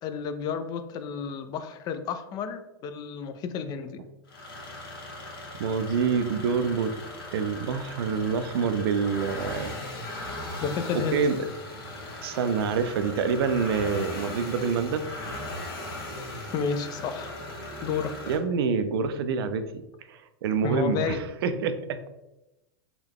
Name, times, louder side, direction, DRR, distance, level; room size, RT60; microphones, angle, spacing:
voice 1, 0.0-4.0 10.6-11.2 16.5-17.4 17.8-18.1 20.6-21.2, left 6 dB, 30° left, 9 dB, 0.3 m, -31 dB
sound 1, 4.3-18.4, left 1 dB, 70° left, 1.1 m, -38 dB
voice 2, 5.6-6.9 7.3-9.7 11.1-11.4 12.2-15.1 18.3-19.8 20.1-22.0, right 5 dB, 75° right, 10 dB, 0.4 m, -26 dB
3.6 x 2.3 x 3.5 m, 0.94 s
hypercardioid pair, 125°, 13 cm